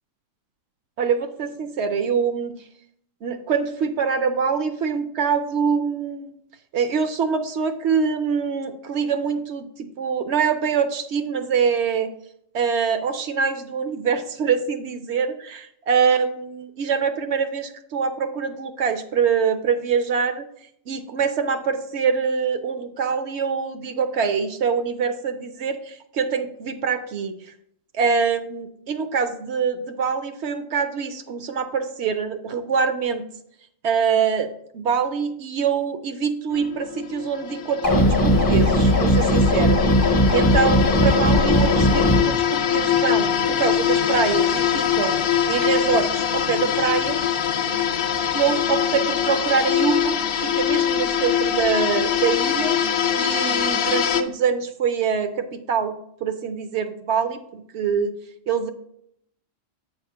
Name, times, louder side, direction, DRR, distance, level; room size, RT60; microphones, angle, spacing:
voice 1, 1.0-2.5 3.2-6.3 6.7-12.1 12.5-20.4 20.9-27.5 28.0-33.2 33.8-39.8 40.3-45.2 45.5-47.2 48.3-52.8 53.2-56.0 56.2-58.1 58.5-58.7, right 6 dB, 65° right, 9 dB, 0.8 m, -24 dB
sound 1, 36.5-54.2, left 9 dB, 60° left, 0.8 m, -23 dB
sound 2, 37.8-42.2, equal, 20° left, 0.6 m, -18 dB
7.8 x 3.5 x 5.6 m, 0.71 s
omnidirectional pair, 1.3 m